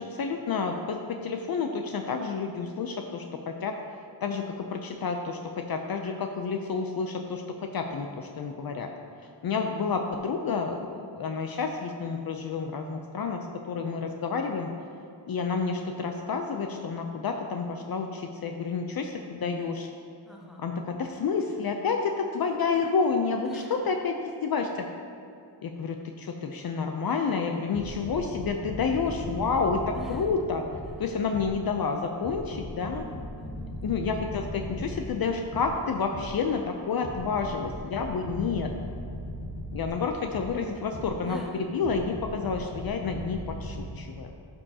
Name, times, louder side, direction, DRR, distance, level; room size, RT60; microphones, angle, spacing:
voice 1, 0.0-7.4 7.7-8.9 9.4-14.7 15.3-19.9 20.6-24.8 25.6-30.6 31.0-33.0 33.8-38.7 39.7-44.3, left 5 dB, 55° left, 4 dB, 0.6 m, -30 dB
voice 2, 20.2-20.7 23.4-23.8 29.9-30.3 30.8-31.0 32.7-33.8 37.9-38.5 41.2-41.6, equal, ahead, -1 dB, 1.2 m, -45 dB
sound 1, 27.7-31.7 32.2-36.5 37.0-41.3 41.8-43.9, equal, 80° left, 1.7 m, -38 dB
11.5 x 5.4 x 2.8 m, 2.6 s
cardioid pair, 75°, 45 cm